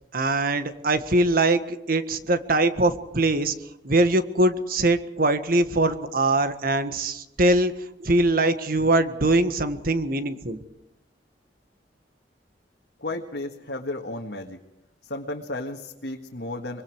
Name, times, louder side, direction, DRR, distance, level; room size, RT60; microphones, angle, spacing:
voice 1, 0.1-3.5 3.8-7.7 8.0-10.6, right 2 dB, 55° right, 10 dB, 1.7 m, -22 dB
voice 2, 13.0-14.6 15.0-16.8, left 2 dB, 70° left, 0 dB, 1.8 m, -33 dB
24.5 x 23.5 x 4.8 m, 0.90 s
head